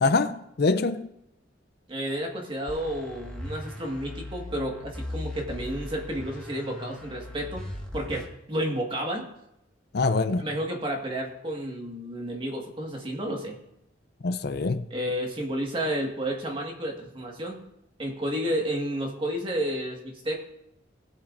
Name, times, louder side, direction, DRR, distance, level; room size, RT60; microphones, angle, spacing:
voice 1, 0.0-1.1 9.9-10.5 14.2-14.9, left 3 dB, 55° left, 0.5 m, -24 dB
voice 2, 1.9-7.6 7.9-9.3 10.4-13.6 14.9-17.6 18.0-20.4, equal, 30° right, 1.7 m, -31 dB
sound 1, 2.7-8.3, left 1 dB, 5° left, 1.6 m, -38 dB
20.0 x 8.2 x 2.6 m
head